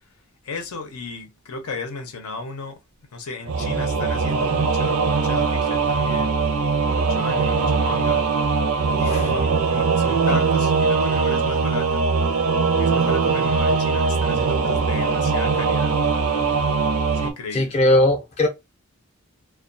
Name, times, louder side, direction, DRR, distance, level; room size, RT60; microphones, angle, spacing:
voice 1, 0.4-2.8 3.1-6.3 6.9-8.2 9.0-12.1 12.8-15.9 17.1-17.8, left 3 dB, 80° left, 0.6 m, -34 dB
Singing / Musical instrument, 3.5-17.3, right 4 dB, 75° right, 0.6 m, -21 dB
voice 2, 17.5-18.5, left 1 dB, 30° left, 0.5 m, -19 dB
2.3 x 2.2 x 2.5 m
head